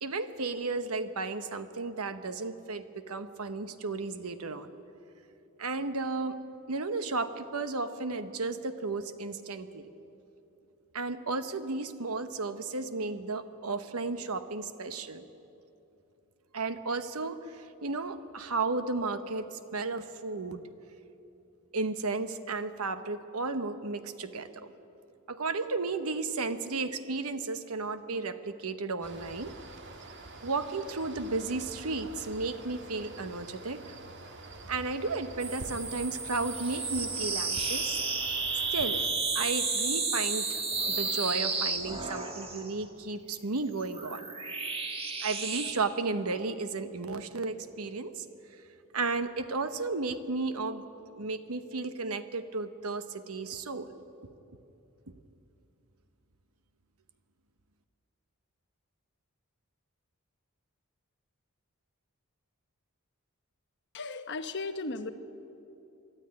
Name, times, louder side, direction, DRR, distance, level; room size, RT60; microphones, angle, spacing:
voice 1, 0.0-4.7 5.6-6.4 6.7-9.9 10.9-15.2 16.5-20.6 21.7-24.7 25.3-29.5 30.4-34.0 34.7-38.0 38.7-39.0 39.3-40.6 41.0-44.3 45.2-48.2 48.9-50.8 51.1-53.9, right 3 dB, 80° right, 10 dB, 1.1 m, -34 dB
sound 1, 29.0-39.1, right 2 dB, 55° right, 1.9 m, -46 dB
sound 2, 35.4-42.7 43.6-45.7, right 4 dB, 25° right, 2.0 m, -32 dB
voice 2, 63.9-65.1, left 3 dB, 55° left, 9 dB, 1.0 m, -36 dB
24.0 x 12.5 x 9.7 m, 2.9 s
head